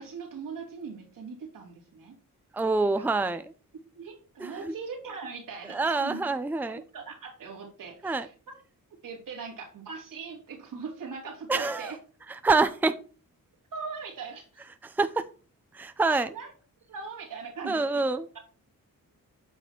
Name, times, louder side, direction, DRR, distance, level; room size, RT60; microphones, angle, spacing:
voice 1, 0.0-2.2 3.0-3.1 3.9-6.2 6.7-8.5 9.0-12.0 13.7-14.6 16.1-16.5 16.9-18.0, right 5 dB, 75° right, 3.1 m, -40 dB
voice 2, 2.5-3.4 4.4-4.7 5.7-6.8 8.0-8.3 11.5-11.9 12.3-13.0 14.8-15.3 15.7-16.3 17.7-18.3, right 3 dB, 5° right, 0.6 m, -26 dB
9.1 x 4.9 x 4.4 m
cardioid pair, 70°, 33 cm